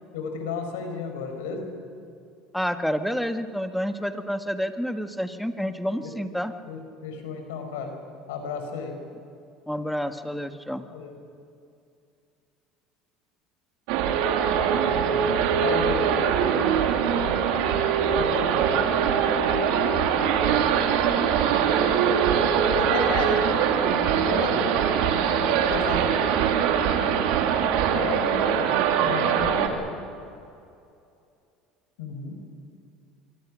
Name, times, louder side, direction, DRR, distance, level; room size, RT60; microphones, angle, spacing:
voice 1, 0.1-1.7 6.0-6.1 6.7-7.9 8.3-9.0 10.9-11.2 15.6-16.0 18.1-18.6 22.6-23.4 24.1-24.9 25.4-26.0 27.9-29.8 32.0-32.4, left 5 dB, 90° left, 5 dB, 4.7 m, -33 dB
voice 2, 2.5-6.5 9.7-10.9, equal, ahead, 8 dB, 1.6 m, -29 dB
sound 1, 13.9-29.7, right 8 dB, 75° right, 2.7 m, -22 dB
25.5 x 23.5 x 6.3 m, 2.5 s
supercardioid pair, 100°, 0 cm